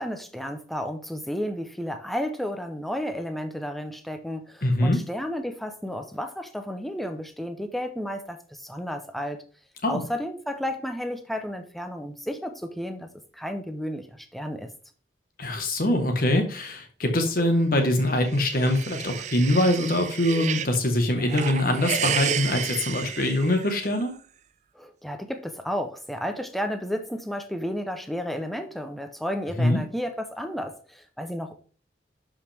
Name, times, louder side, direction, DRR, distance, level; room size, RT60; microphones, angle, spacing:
voice 1, 0.0-9.4 9.9-14.7 24.7-31.7, equal, ahead, 6 dB, 0.7 m, -32 dB
voice 2, 4.6-5.0 9.8-10.0 15.4-24.1 29.6-29.8, left 1 dB, 50° left, 5 dB, 1.4 m, -23 dB
sound 1, 18.1-20.8 21.2-24.0, right 8 dB, 40° right, 0.4 m, -31 dB
11.0 x 5.1 x 3.5 m, 0.43 s
head